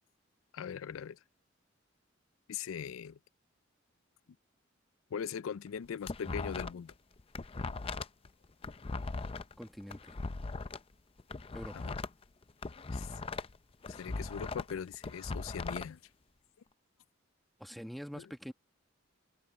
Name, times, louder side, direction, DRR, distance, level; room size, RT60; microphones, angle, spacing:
voice 1, 0.5-1.2 2.5-3.2 5.1-6.9 11.7-11.9 12.9-13.2 13.9-16.0 18.1-18.3, left 7 dB, 80° left, 0.4 m, -40 dB
sound 1, 5.7-6.9 7.2-10.8 11.2-13.6 13.8-15.9, left 3 dB, 30° left, 0.5 m, -39 dB
voice 2, 9.6-10.2 11.5-11.9 17.6-18.5, equal, ahead, 1.2 m, -45 dB
head